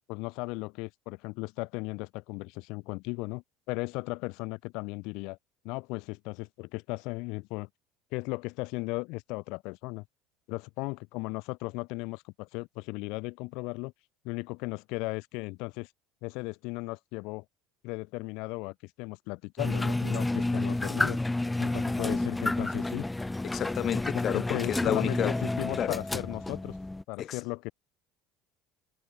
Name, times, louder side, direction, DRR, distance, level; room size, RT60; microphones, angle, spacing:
voice 1, 0.1-5.4 5.6-7.7 8.1-10.0 10.5-13.9 14.2-15.9 16.2-17.4 17.8-21.2 21.6-23.1 24.1-26.8 27.1-27.7, left 26 dB, 70° left, 6.2 m, -36 dB
sound 1, 19.6-27.0, left 2 dB, 10° left, 7.1 m, -30 dB
voice 2, 23.4-25.3 25.8-26.0 27.2-27.4, left 10 dB, 45° left, 3.8 m, -31 dB
supercardioid pair, 85°, 0 cm